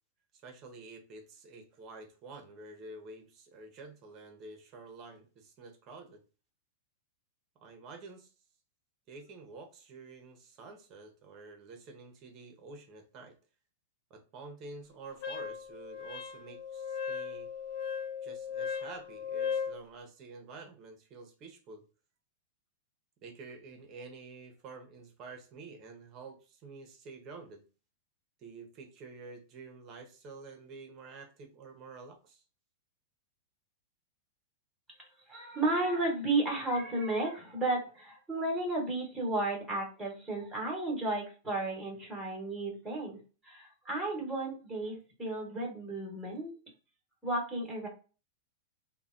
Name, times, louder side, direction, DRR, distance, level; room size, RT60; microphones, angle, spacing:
voice 1, 0.3-6.2 7.6-8.3 9.1-13.3 14.1-17.5 18.2-21.8 23.2-27.6 28.4-32.4, right 3 dB, 30° right, 5 dB, 0.7 m, -49 dB
Wind instrument woodwind instrument, 15.2-19.8, left 7 dB, 45° left, 0.4 m, -37 dB
voice 2, 35.3-46.5 47.2-47.9, right 2 dB, 5° right, -1 dB, 1.2 m, -33 dB
3.1 x 2.1 x 2.5 m, 0.34 s
supercardioid pair, 155°, 0 cm